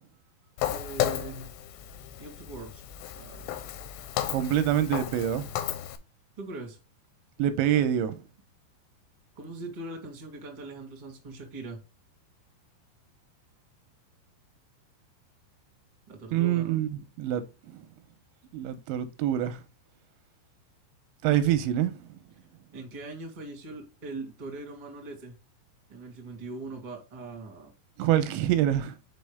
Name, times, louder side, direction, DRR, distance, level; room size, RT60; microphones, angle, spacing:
Walk footsteps, 0.6-6.0, left 11 dB, 80° left, 2.8 m, -34 dB
voice 1, 0.6-1.5 2.2-2.8 3.1-3.6 6.4-6.8 9.3-11.8 16.1-16.8 22.7-25.3 25.9-27.7, right 2 dB, 20° right, 1.1 m, -41 dB
voice 2, 4.3-5.5 7.4-8.2 16.3-17.4 17.7-17.8 18.5-19.6 21.2-22.0 28.0-28.9, right 11 dB, 85° right, 2.9 m, -26 dB
6.3 x 5.4 x 3.4 m
omnidirectional pair, 5.3 m